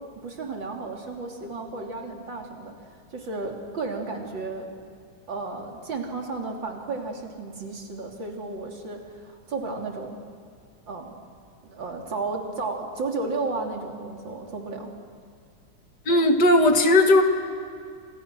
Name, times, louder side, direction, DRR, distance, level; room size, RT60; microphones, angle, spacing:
voice 1, 0.0-2.7 3.1-4.7 5.3-10.2 10.9-11.2 11.6-14.9, right 3 dB, 65° right, 1 dB, 3.8 m, -33 dB
voice 2, 16.1-17.2, left 1 dB, 55° left, 5 dB, 2.5 m, -17 dB
30.0 x 27.0 x 6.2 m, 2.3 s
omnidirectional pair, 2.2 m